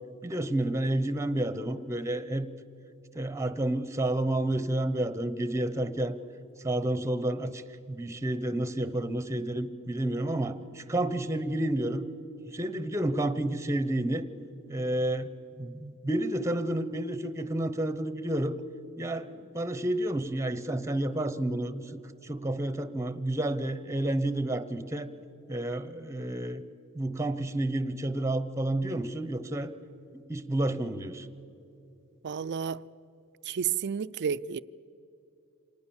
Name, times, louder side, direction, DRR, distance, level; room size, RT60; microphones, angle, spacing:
voice 1, 0.2-2.5 3.1-6.2 6.6-7.6 7.9-12.0 12.5-14.3 14.7-15.3 15.6-18.5 19.0-25.1 25.5-26.6 26.9-29.7 30.3-31.3, right 1 dB, 15° right, 0.8 m, -30 dB
voice 2, 32.2-32.8 33.5-34.6, right 7 dB, 50° right, 0.4 m, -31 dB
26.0 x 19.0 x 7.1 m
head